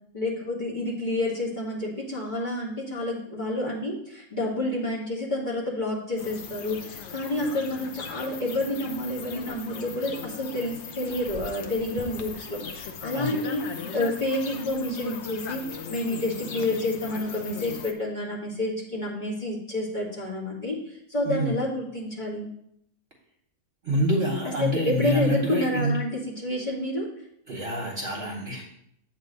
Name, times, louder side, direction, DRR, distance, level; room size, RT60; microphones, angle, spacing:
voice 1, 0.1-12.6 13.0-13.6 13.9-22.5 24.6-26.1 26.4-27.1, left 1 dB, 30° left, -6 dB, 2.0 m, -29 dB
sound 1, 6.2-17.9, left 5 dB, 60° left, 0.8 m, -38 dB
voice 2, 23.8-26.0 27.5-28.6, equal, 45° right, 0 dB, 1.2 m, -27 dB
8.1 x 3.2 x 6.4 m, 0.73 s
omnidirectional pair, 1.6 m